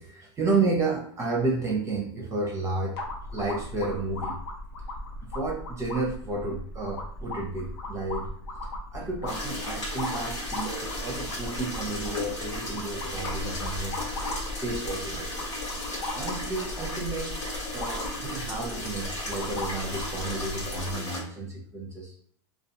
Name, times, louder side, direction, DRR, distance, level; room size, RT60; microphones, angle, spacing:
voice 1, 0.0-3.0 3.3-4.4 5.3-8.3 8.9-14.0 14.6-15.3 16.1-17.3 17.7-22.1, right 3 dB, 20° right, -1 dB, 0.6 m, -31 dB
sound 1, 3.0-21.0, left 1 dB, 65° left, 0.7 m, -37 dB
sound 2, 9.3-21.2, left 1 dB, 90° left, 1.3 m, -35 dB
2.3 x 2.3 x 2.8 m, 0.63 s
hypercardioid pair, 120°, 15 cm